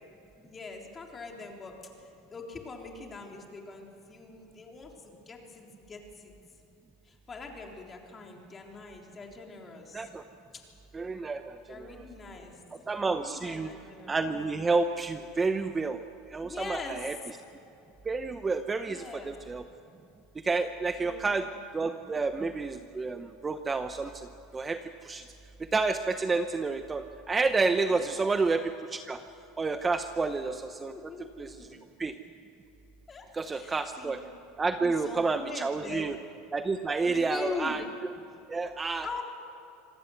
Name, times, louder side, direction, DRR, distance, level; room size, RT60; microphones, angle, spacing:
voice 1, 0.4-6.3 7.0-10.1 11.7-12.6 13.0-14.3 16.4-17.1 18.8-19.3 21.0-22.0 27.8-28.4 30.9-31.8 33.1-33.3 33.5-34.3 34.8-36.0 37.0-37.8 39.0-39.2, left 4 dB, 25° left, 1 dB, 3.8 m, -42 dB
voice 2, 9.9-10.2 10.9-12.0 12.7-13.7 14.1-16.0 16.3-17.2 18.0-19.6 20.4-21.5 21.7-25.3 25.6-29.2 29.6-30.9 31.4-31.6 32.0-32.1 33.3-34.2 34.6-36.2 36.5-37.8 38.5-39.1, right 4 dB, 15° right, 9 dB, 0.8 m, -30 dB
26.5 x 18.0 x 8.0 m, 2.7 s
supercardioid pair, 125°, 0 cm